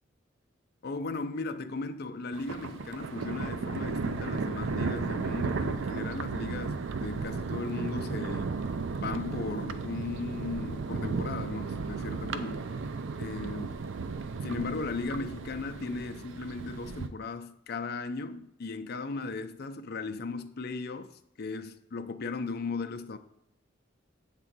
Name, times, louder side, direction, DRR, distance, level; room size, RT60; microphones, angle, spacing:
voice 1, 0.8-8.6 8.9-12.7 13.2-13.7 14.4-21.1 21.4-23.2, left 3 dB, 55° left, 0.5 m, -36 dB
Thunder, 2.3-17.1, right 4 dB, 70° right, 0.5 m, -34 dB
7.9 x 3.7 x 6.0 m
head